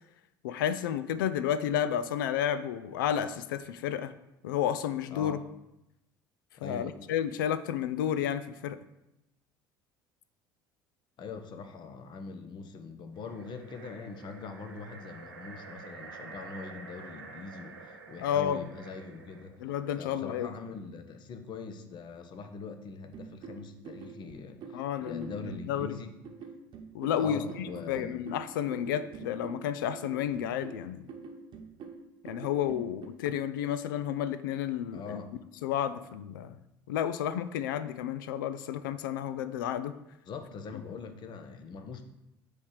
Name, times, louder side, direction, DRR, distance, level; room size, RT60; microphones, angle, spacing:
voice 1, 0.4-4.1 4.4-5.4 6.6-8.8 18.2-18.6 19.6-20.5 24.7-26.0 26.9-31.1 32.2-35.2 35.6-39.9, left 9 dB, 70° left, 13 dB, 0.4 m, -31 dB
voice 2, 6.6-7.0 11.2-19.6 20.0-26.1 27.2-28.1 34.9-35.3 40.3-42.1, left 4 dB, 45° left, 7 dB, 0.9 m, -42 dB
sound 1, 13.1-19.6, right 4 dB, 80° right, 0.7 m, -48 dB
sound 2, 23.1-33.1, right 5 dB, 45° right, 1.0 m, -45 dB
7.0 x 3.4 x 6.3 m, 0.89 s
figure-of-eight pair, 60°, 11 cm